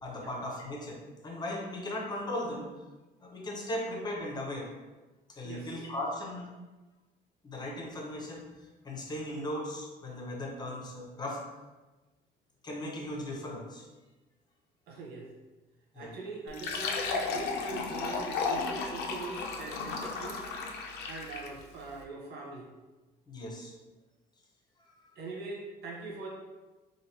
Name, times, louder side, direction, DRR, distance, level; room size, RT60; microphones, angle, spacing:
voice 1, 0.0-2.7 3.2-4.7 5.4-6.5 7.4-8.4 8.8-11.4 12.6-13.9 15.9-16.1 23.3-23.7 24.9-25.0, left 1 dB, 25° left, -1 dB, 0.7 m, -37 dB
voice 2, 14.9-15.3 15.9-20.4 21.1-22.7 25.2-26.3, right 3 dB, 70° right, -1 dB, 0.8 m, -42 dB
Fill (with liquid), 16.5-21.6, left 4 dB, 75° left, 0.5 m, -34 dB
3.1 x 2.6 x 2.9 m, 1.2 s
cardioid pair, 110°, 17 cm